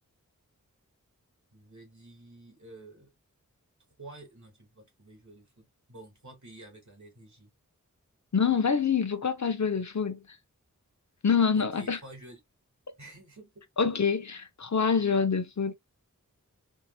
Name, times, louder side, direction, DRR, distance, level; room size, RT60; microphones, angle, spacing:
voice 1, 1.5-3.1 4.0-7.5 11.5-12.4 13.0-14.0, right 2 dB, 60° right, 2.8 m, -50 dB
voice 2, 8.3-10.2 11.2-12.0 13.8-15.7, left 6 dB, 60° left, 0.7 m, -26 dB
4.6 x 2.9 x 2.2 m
wide cardioid pair, 55°, 33 cm